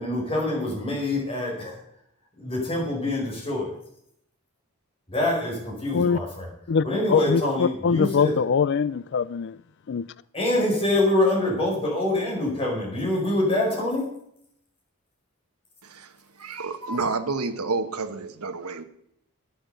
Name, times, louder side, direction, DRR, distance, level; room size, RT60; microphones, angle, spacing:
voice 1, 0.0-1.8 2.4-3.7 5.1-6.5 6.8-8.3 10.3-14.1, left 1 dB, 25° left, 5.1 m, -25 dB
voice 2, 6.7-9.6 9.9-10.1, left 6 dB, 50° left, 0.4 m, -23 dB
voice 3, 15.8-18.8, right 3 dB, 85° right, 1.2 m, -30 dB
11.5 x 9.5 x 6.8 m
head